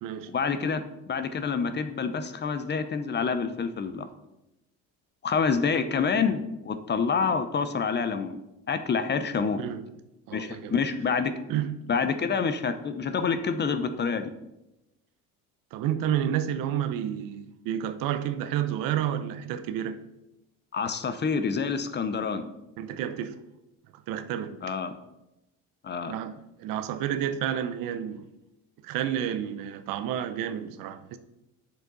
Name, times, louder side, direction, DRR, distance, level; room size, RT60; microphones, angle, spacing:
voice 1, 0.3-4.1 5.2-8.4 8.7-9.6 10.3-11.3 11.9-14.3 20.7-22.5 24.6-24.9 25.8-26.2, left 5 dB, 30° left, 0.7 m, -27 dB
voice 2, 9.6-9.9 10.3-10.7 11.5-11.8 15.7-20.0 22.8-23.4 24.1-24.6 26.1-28.3 28.8-31.2, right 10 dB, 70° right, 0.8 m, -30 dB
7.9 x 6.6 x 4.0 m
supercardioid pair, 95°, 35 cm